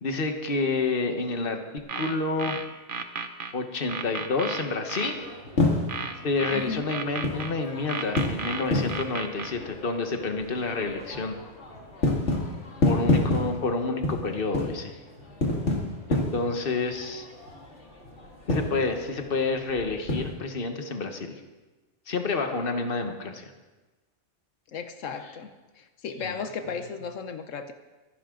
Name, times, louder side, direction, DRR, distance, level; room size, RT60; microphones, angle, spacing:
voice 1, 0.0-1.6 1.9-2.6 3.5-5.2 6.2-11.4 12.8-15.0 16.1-17.3 18.5-21.4 22.1-23.5 26.2-26.3, left 3 dB, 50° left, 5 dB, 1.5 m, -29 dB
sound 1, 1.8-3.5 3.9-5.2 5.9-7.5 7.9-9.5, right 5 dB, 50° right, 1.0 m, -33 dB
sound 2, 5.0-20.3, left 2 dB, 65° left, 2.6 m, -30 dB
voice 2, 6.5-6.9 24.7-25.5 25.8-27.7, left 5 dB, 90° left, 8 dB, 1.2 m, -35 dB
25.0 x 11.0 x 3.8 m, 1.2 s
omnidirectional pair, 1.3 m